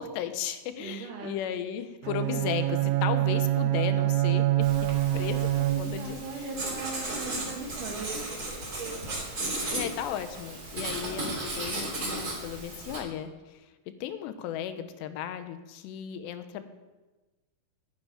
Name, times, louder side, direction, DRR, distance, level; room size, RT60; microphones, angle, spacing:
voice 1, 0.0-4.7 5.1-6.2 9.7-13.7 14.0-16.6, left 10 dB, 85° left, 10 dB, 3.0 m, -35 dB
voice 2, 0.8-1.6 5.7-9.2, right 4 dB, 55° right, -1 dB, 3.1 m, -39 dB
Bowed string instrument, 2.0-6.3, right 15 dB, 85° right, 2.7 m, -26 dB
Writing, 4.6-13.0, right 2 dB, 25° right, 2.9 m, -35 dB
9.8 x 9.8 x 9.1 m, 1.2 s
omnidirectional pair, 4.9 m